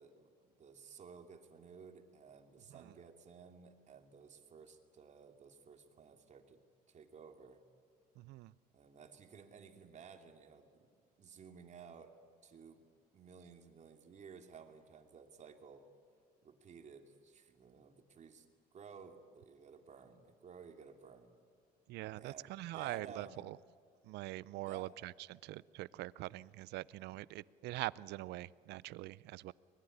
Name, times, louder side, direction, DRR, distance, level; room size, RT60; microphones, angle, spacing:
voice 1, 0.0-6.6 6.9-7.6 8.7-10.9 11.2-12.1 12.4-12.8 13.1-15.9 16.4-18.5 18.7-21.3 22.2-23.4 24.7-24.9, right 6 dB, 45° right, 5 dB, 2.7 m, -55 dB
voice 2, 8.2-8.5 21.9-23.6 24.0-29.5, right 17 dB, 80° right, 21 dB, 0.5 m, -44 dB
23.5 x 21.0 x 9.9 m, 2.3 s
cardioid pair, 110°, 17 cm